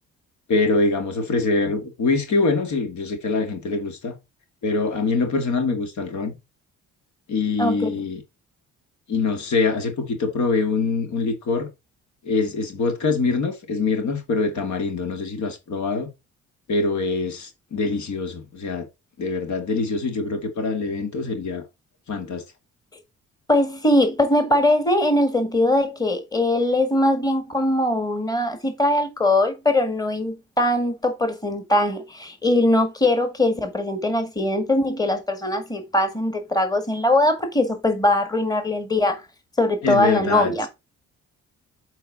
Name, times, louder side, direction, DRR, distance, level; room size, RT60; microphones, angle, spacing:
voice 1, 0.5-4.2 4.6-6.4 7.3-8.2 9.1-11.7 12.2-16.1 16.7-18.9 19.2-21.6 22.1-22.4 39.8-40.5, left 3 dB, 70° left, 2.2 m, -24 dB
voice 2, 7.6-8.0 23.5-39.2 39.6-40.7, left 1 dB, 10° left, 1.9 m, -21 dB
7.8 x 4.6 x 4.0 m
cardioid pair, 90°, 30 cm